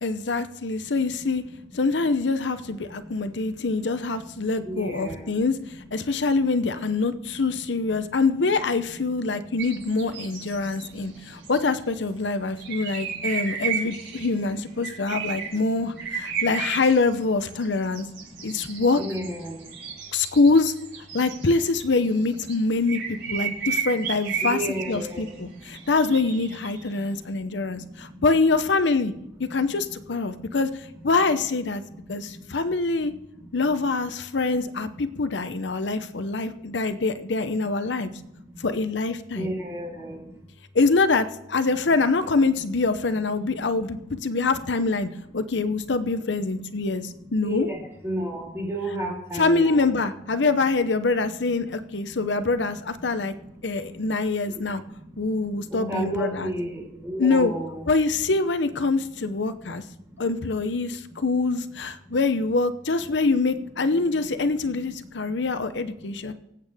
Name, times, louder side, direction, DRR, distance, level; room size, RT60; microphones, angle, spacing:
voice 1, 0.0-1.4 1.7-5.6 5.9-18.1 18.4-19.0 20.1-20.7 21.1-24.6 24.9-29.1 29.5-31.8 32.1-33.1 33.5-38.1 38.6-39.5 40.7-47.7 49.3-53.3 53.6-54.8 55.2-56.5 57.2-57.5 57.9-59.8 60.2-66.3, left 3 dB, 80° left, 11 dB, 0.8 m, -24 dB
voice 2, 4.6-5.3 19.0-19.6 24.4-25.3 39.3-40.2 43.4-43.5 47.4-50.0 54.6-54.7 55.7-57.8, right 1 dB, 15° right, -2 dB, 4.3 m, -31 dB
sound 1, 9.6-10.9 11.2-11.6 12.6-14.3 14.8-15.6 16.0-22.5 22.9-26.8, right 7 dB, 75° right, 5.6 m, -33 dB
24.5 x 8.3 x 3.5 m, 0.83 s
head